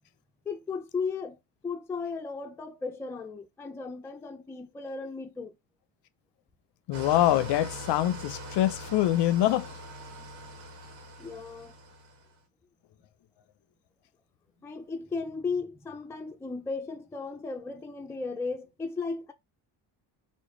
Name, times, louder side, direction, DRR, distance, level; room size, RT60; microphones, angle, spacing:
voice 1, 0.5-1.4 1.6-5.6 11.2-11.8 14.6-19.3, left 4 dB, 5° left, 0.3 m, -35 dB
voice 2, 6.9-9.8, left 13 dB, 60° left, 0.5 m, -25 dB
Engine starting / Idling, 6.9-12.3, equal, 60° right, 1.1 m, -42 dB
3.2 x 2.1 x 3.6 m
cardioid pair, 100°, 48 cm